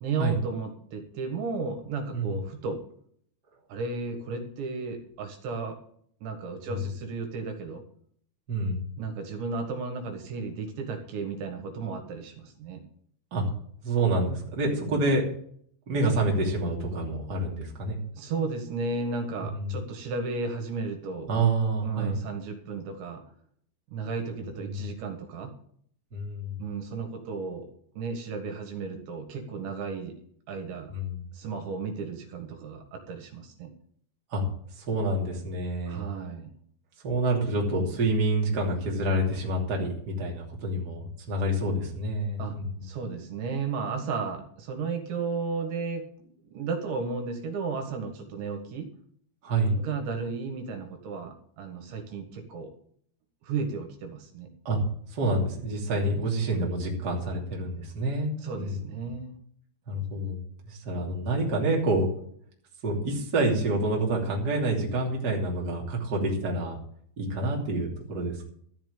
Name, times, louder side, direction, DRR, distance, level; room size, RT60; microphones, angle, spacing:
voice 1, 0.0-2.8 3.7-5.8 6.2-7.8 9.0-12.8 14.8-15.1 18.1-21.3 21.8-23.2 23.9-25.5 26.6-30.1 30.5-30.9 31.3-33.7 35.9-36.5 42.4-42.6 42.8-46.1 46.4-48.9 49.7-52.7 53.4-54.5 58.4-59.3, right 4 dB, 75° right, 5 dB, 3.8 m, -34 dB
voice 2, 8.5-8.8 13.3-13.4 13.8-15.2 15.9-18.0 19.6-19.7 21.3-22.1 24.6-24.9 26.1-26.6 30.9-31.2 34.3-34.4 34.7-36.0 37.0-42.7 49.4-49.8 54.6-54.8 55.1-58.3 58.5-58.8 59.9-60.4 60.7-62.1 62.8-66.8 67.2-68.4, right 2 dB, 25° right, -1 dB, 2.8 m, -27 dB
13.5 x 6.0 x 8.7 m, 0.62 s
omnidirectional pair, 5.3 m